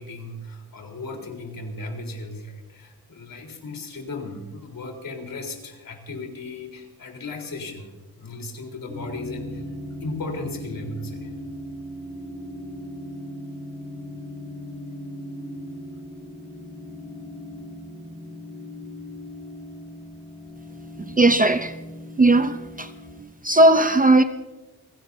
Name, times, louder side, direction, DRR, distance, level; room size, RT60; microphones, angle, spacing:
voice 1, 0.0-9.6 10.0-11.3, left 2 dB, 60° left, 3.8 m, -36 dB
sound 1, 8.9-23.2, left 1 dB, 5° right, 6.0 m, -38 dB
voice 2, 21.1-21.7 22.2-22.9 23.4-24.2, right 2 dB, 20° right, 0.6 m, -17 dB
30.0 x 17.0 x 2.7 m
wide cardioid pair, 125°, 37 cm